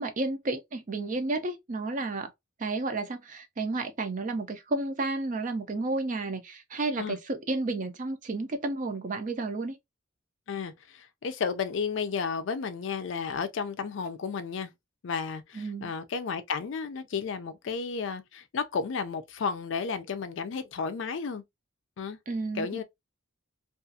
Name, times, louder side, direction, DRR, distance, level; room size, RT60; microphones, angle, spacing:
voice 1, 0.0-2.3 2.6-9.8 15.5-15.9 22.3-22.8, right 2 dB, 40° right, 0.5 m, -32 dB
voice 2, 10.5-14.7 15.0-21.4 22.0-22.2 22.6-22.8, left 5 dB, 65° left, 0.4 m, -33 dB
2.4 x 2.4 x 2.6 m
head